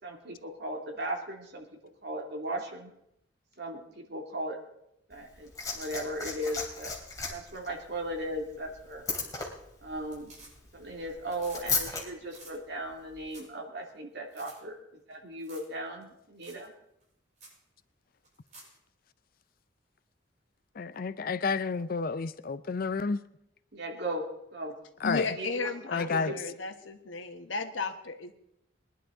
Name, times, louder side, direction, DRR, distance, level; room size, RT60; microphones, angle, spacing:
voice 1, 0.0-1.7 2.0-2.9 3.6-4.6 5.1-6.9 7.3-9.0 9.8-10.3 10.7-14.8 15.1-16.7 23.7-24.2 24.5-24.7 25.3-26.5, right 1 dB, 60° right, 2.5 m, -37 dB
Liquid, 5.1-12.0 13.1-13.2, left 4 dB, 20° left, 3.0 m, -36 dB
sound 1, 9.3-9.6 9.9-10.9 11.2-11.6 11.9-12.0 12.3-12.5 13.0-13.1 13.3-13.6 13.9-14.0 14.3-14.6 15.4-15.7 16.0-16.1 16.4-16.7 17.0-17.1 17.4-17.6 18.2-18.8 20.9-21.0, right 2 dB, 40° right, 6.4 m, -52 dB
voice 2, 20.7-23.2 25.0-25.3 25.9-26.3, left 4 dB, 50° left, 0.5 m, -30 dB
voice 3, 25.0-28.3, left 4 dB, 85° left, 1.3 m, -34 dB
21.0 x 11.0 x 3.8 m
head